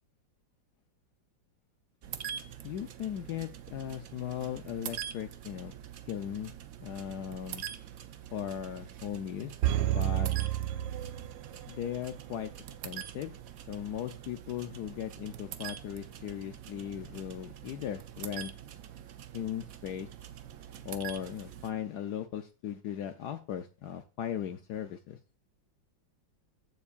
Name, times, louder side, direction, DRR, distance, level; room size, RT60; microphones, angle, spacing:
sound 1, 2.0-21.7, right 10 dB, 60° right, 0.9 m, -45 dB
voice 1, 2.6-5.7 6.1-6.5 6.8-7.7 8.3-10.3 11.7-12.5 12.8-13.3 13.7-18.5 19.3-20.1 20.8-25.2, left 10 dB, 70° left, 1.0 m, -38 dB
sound 2, 9.6-11.8 12.1-12.2, right 13 dB, 80° right, 1.3 m, -30 dB
15.0 x 7.1 x 2.4 m
omnidirectional pair, 2.1 m